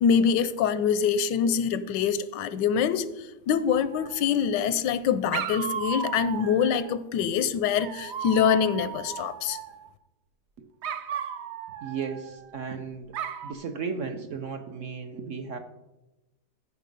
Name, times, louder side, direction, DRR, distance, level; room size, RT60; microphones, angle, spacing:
voice 1, 0.0-9.6, left 7 dB, 90° left, 1.3 m, -25 dB
Dog, 3.8-4.6 5.3-7.0 7.8-9.9 10.8-12.7 13.1-13.5, right 8 dB, 80° right, 0.6 m, -36 dB
voice 2, 11.8-13.2 13.4-15.6, right 5 dB, 60° right, 0.9 m, -35 dB
14.0 x 5.1 x 5.3 m
omnidirectional pair, 1.9 m